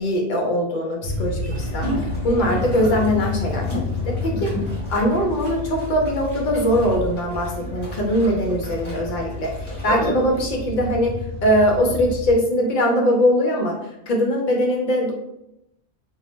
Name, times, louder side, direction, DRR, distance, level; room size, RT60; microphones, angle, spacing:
voice 1, 0.0-4.5 4.9-11.1 11.4-13.8 14.1-15.1, equal, 55° left, 0 dB, 0.6 m, -21 dB
sound 1, 1.0-12.3, left 3 dB, 70° right, 0.8 m, -30 dB
sound 2, 1.5-10.4, left 1 dB, 25° left, 1.2 m, -34 dB
2.2 x 2.1 x 3.0 m, 0.83 s
omnidirectional pair, 1.2 m